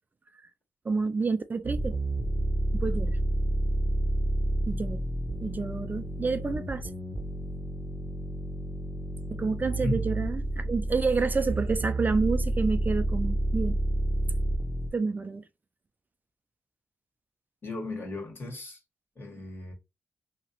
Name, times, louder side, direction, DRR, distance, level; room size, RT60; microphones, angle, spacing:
voice 1, 0.8-2.0 2.7-3.2 4.7-5.0 5.4-6.9 9.4-13.8 14.9-15.4, right 4 dB, 30° right, 0.4 m, -29 dB
sound 1, 1.6-14.9, right 1 dB, 15° left, 1.2 m, -30 dB
voice 2, 17.6-18.8 19.2-19.7, left 2 dB, 40° left, 1.8 m, -35 dB
2.9 x 2.8 x 3.0 m
supercardioid pair, 50°, 6 cm